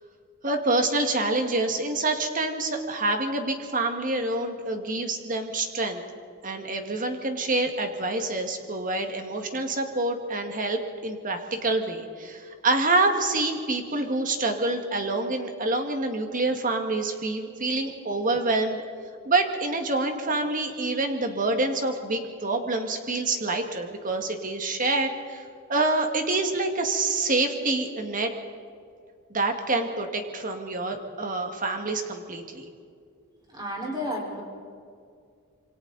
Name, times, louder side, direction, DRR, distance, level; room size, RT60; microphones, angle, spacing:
voice 1, 0.4-6.0 6.4-18.8 19.3-25.4 25.7-28.3 29.3-32.6, right 2 dB, 35° right, 5 dB, 1.9 m, -27 dB
voice 2, 33.5-34.4, equal, 20° right, -2 dB, 4.7 m, -32 dB
27.0 x 24.5 x 4.1 m, 2.3 s
head